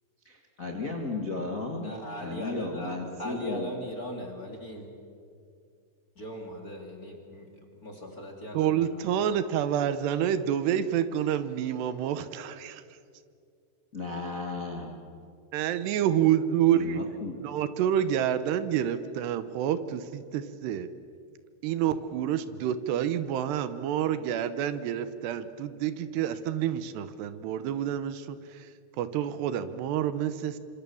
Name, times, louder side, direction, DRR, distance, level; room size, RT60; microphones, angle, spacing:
voice 1, 0.2-1.9 2.2-3.7 13.9-14.9 16.7-17.4, left 3 dB, 65° left, 2 dB, 0.8 m, -34 dB
voice 2, 1.7-4.9 6.2-7.5 7.8-9.0, equal, 25° left, 1 dB, 2.4 m, -39 dB
voice 3, 8.5-12.8 15.5-17.0 17.3-20.9 21.6-28.7 29.0-30.6, right 10 dB, 75° right, 13 dB, 2.9 m, -28 dB
27.0 x 25.5 x 7.1 m, 2.4 s
omnidirectional pair, 5.0 m